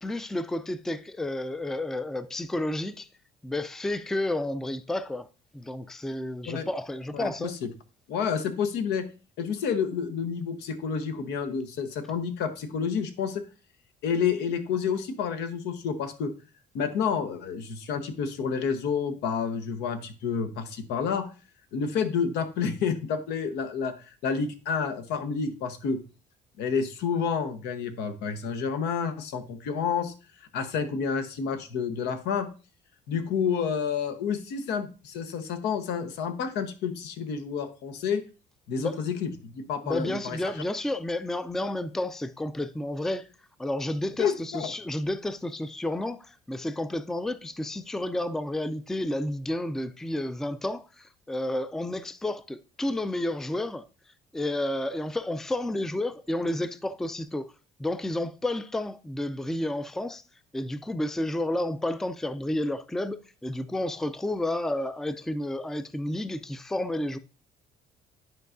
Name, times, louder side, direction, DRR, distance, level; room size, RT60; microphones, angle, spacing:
voice 1, 0.0-3.1 3.4-5.3 5.5-7.5 38.8-39.0 39.8-43.3 43.6-53.9 54.3-57.5 57.8-60.2 60.5-67.2, left 1 dB, 5° left, 0.3 m, -31 dB
voice 2, 7.1-7.7 8.1-9.1 9.4-13.4 14.0-16.3 16.7-21.3 21.7-26.0 26.6-30.1 30.5-32.5 33.1-38.2 38.7-40.5 44.2-44.7, left 6 dB, 85° left, 0.9 m, -29 dB
10.5 x 4.6 x 2.5 m
cardioid pair, 110°, 17 cm